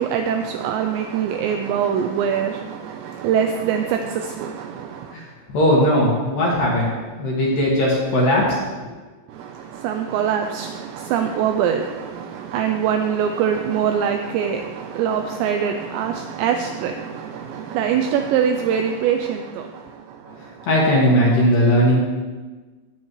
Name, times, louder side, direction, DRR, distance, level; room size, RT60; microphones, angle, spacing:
voice 1, 0.0-5.2 9.3-20.7, right 8 dB, 85° right, 6 dB, 2.5 m, -24 dB
voice 2, 5.5-6.9 7.2-8.6 20.7-22.0, equal, 55° left, -4 dB, 2.8 m, -18 dB
18.0 x 7.2 x 3.1 m, 1.3 s
omnidirectional pair, 5.6 m